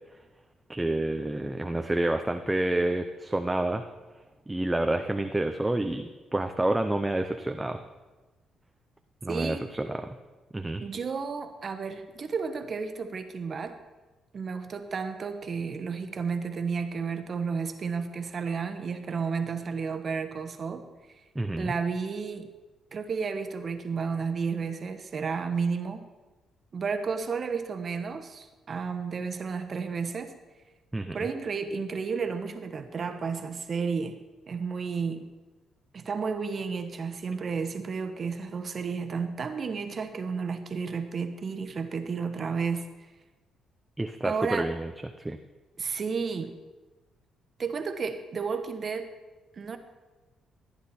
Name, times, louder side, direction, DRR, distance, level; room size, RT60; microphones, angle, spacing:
voice 1, 0.7-3.8 4.5-7.8 9.2-10.2 10.5-10.8 21.4-21.7 30.9-31.2 44.0-44.9 45.2-45.4, right 1 dB, 10° right, 6 dB, 0.6 m, -28 dB
voice 2, 9.3-9.7 10.8-13.8 14.3-20.9 21.6-22.5 22.9-26.1 26.7-30.4 31.1-34.2 34.5-35.3 35.9-42.9 44.2-44.7 45.8-46.6 47.6-49.1 49.6-49.8, right 5 dB, 45° right, 8 dB, 1.1 m, -32 dB
14.5 x 9.7 x 4.3 m, 1.2 s
cardioid pair, 90°, 0 cm